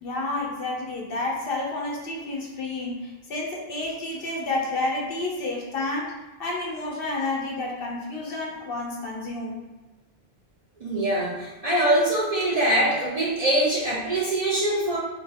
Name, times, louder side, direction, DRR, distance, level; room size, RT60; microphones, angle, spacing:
voice 1, 0.0-6.1 6.4-9.6, left 2 dB, 65° left, -2 dB, 0.9 m, -30 dB
voice 2, 10.8-15.0, right 1 dB, 45° right, -5 dB, 0.5 m, -23 dB
2.7 x 2.2 x 3.4 m, 1.1 s
omnidirectional pair, 1.1 m